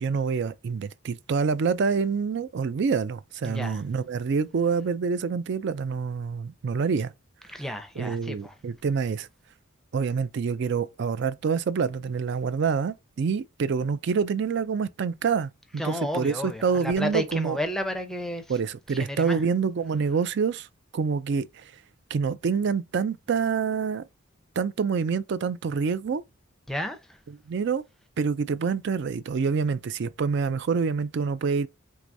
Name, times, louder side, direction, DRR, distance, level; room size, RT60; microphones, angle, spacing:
voice 1, 0.0-7.1 8.0-9.3 9.9-16.3 16.6-17.6 18.5-20.7 20.9-21.7 22.1-24.0 24.6-26.2 27.5-27.8 28.2-31.7, right 5 dB, 55° right, 0.3 m, -26 dB
voice 2, 3.4-3.8 7.5-8.6 15.8-18.6 18.9-19.4 26.7-27.2, equal, ahead, 0.5 m, -32 dB
4.7 x 3.0 x 2.6 m
head